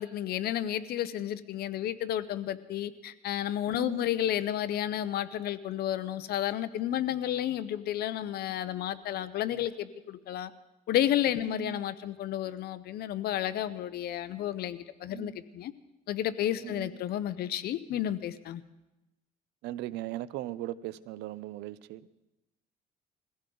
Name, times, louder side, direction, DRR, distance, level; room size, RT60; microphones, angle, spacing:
voice 1, 0.0-10.5 10.9-15.7 16.1-18.6, left 11 dB, 70° left, 14 dB, 0.8 m, -31 dB
voice 2, 3.7-4.1 11.4-11.8 15.1-15.4 16.6-17.0 19.6-22.0, right 14 dB, 90° right, 17 dB, 0.6 m, -39 dB
21.5 x 16.0 x 3.9 m, 0.99 s
cardioid pair, 110°, 17 cm